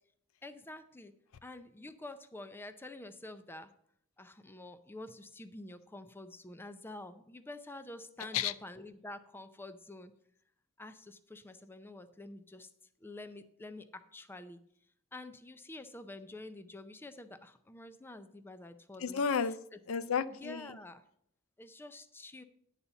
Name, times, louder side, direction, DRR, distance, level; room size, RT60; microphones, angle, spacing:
voice 1, 0.4-1.1 1.4-3.7 4.2-10.1 10.8-12.7 13.0-14.6 15.1-19.2 19.7-19.8 20.4-21.0 21.6-22.4, left 2 dB, 10° left, 10 dB, 0.4 m, -48 dB
voice 2, 8.2-8.5 19.0-20.8, left 6 dB, 75° left, 13 dB, 0.5 m, -33 dB
10.0 x 4.1 x 6.9 m, 0.70 s
head